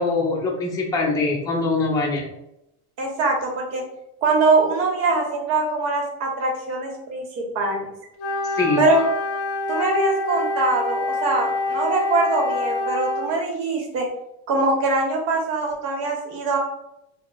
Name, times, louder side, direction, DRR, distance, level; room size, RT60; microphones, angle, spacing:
voice 1, 0.0-2.2 8.4-8.8, left 3 dB, 10° left, -3 dB, 0.6 m, -23 dB
voice 2, 3.0-3.8 4.2-7.9 8.8-9.1 9.7-14.1 14.5-16.6, right 3 dB, 55° right, 1 dB, 1.1 m, -22 dB
Wind instrument woodwind instrument, 8.2-13.4, left 2 dB, 50° left, 0.6 m, -26 dB
2.9 x 2.1 x 3.5 m, 0.85 s
cardioid pair, 140°, 31 cm